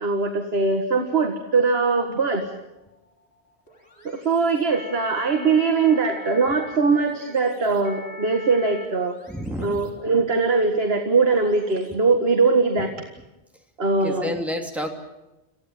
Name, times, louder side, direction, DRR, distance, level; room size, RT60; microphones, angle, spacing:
voice 1, 0.0-2.4 4.0-9.2 9.6-12.9 13.8-14.3, right 4 dB, 70° right, 4 dB, 2.0 m, -21 dB
sound 1, 2.6-12.0, left 1 dB, 85° left, 4.5 m, -43 dB
voice 2, 9.3-9.8 12.7-12.8 14.0-14.9, left 1 dB, ahead, 2 dB, 2.8 m, -29 dB
27.5 x 15.5 x 9.0 m, 0.99 s
omnidirectional pair, 1.1 m